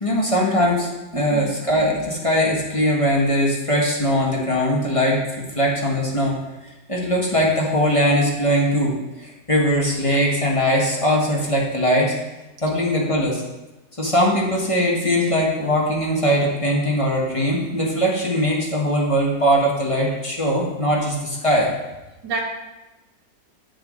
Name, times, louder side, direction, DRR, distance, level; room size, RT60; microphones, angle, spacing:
voice 1, 0.0-6.4 6.9-9.0 9.2-12.1 12.6-13.4 14.0-21.7, equal, 20° left, -3 dB, 1.6 m, -20 dB
voice 2, 1.1-1.5 22.2-22.4, right 4 dB, 85° right, 0 dB, 2.1 m, -28 dB
9.4 x 7.1 x 4.0 m, 1.0 s
omnidirectional pair, 1.8 m